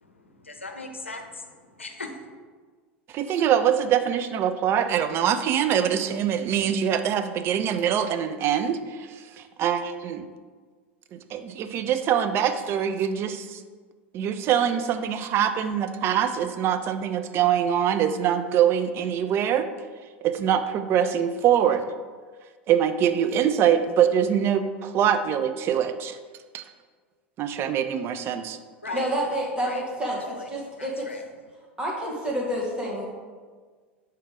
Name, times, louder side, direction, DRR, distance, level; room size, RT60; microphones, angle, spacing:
voice 1, 0.0-2.3 28.8-29.1 29.6-29.8 30.3-30.5 30.8-31.2, left 2 dB, 85° left, 4 dB, 0.6 m, -38 dB
voice 2, 3.1-10.3 11.1-13.6 14.1-19.7 20.2-21.8 22.7-26.2 26.5-26.7 27.4-28.6, right 9 dB, 40° right, 9 dB, 0.4 m, -24 dB
voice 3, 28.9-31.1 31.8-33.0, equal, 15° right, -3 dB, 1.7 m, -29 dB
5.6 x 3.5 x 4.9 m, 1.5 s
figure-of-eight pair, 80°, 6 cm